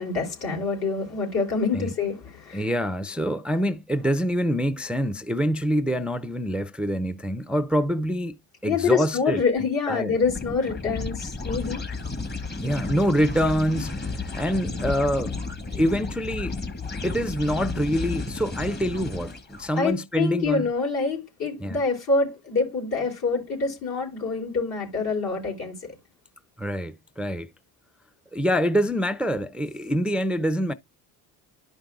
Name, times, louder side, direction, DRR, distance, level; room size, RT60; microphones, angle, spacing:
voice 1, 0.0-2.6 8.6-11.8 13.7-13.8 19.8-25.9, left 4 dB, 65° left, 3.4 m, -26 dB
voice 2, 2.5-8.4 8.6-9.4 9.9-10.2 12.6-15.4 15.7-16.6 17.0-20.7 21.6-21.8 26.6-27.5 28.3-30.7, equal, 5° right, 0.3 m, -25 dB
sound 1, 10.2-19.7, left 3 dB, 25° left, 1.3 m, -33 dB
11.0 x 5.2 x 2.4 m
supercardioid pair, 70°, 40 cm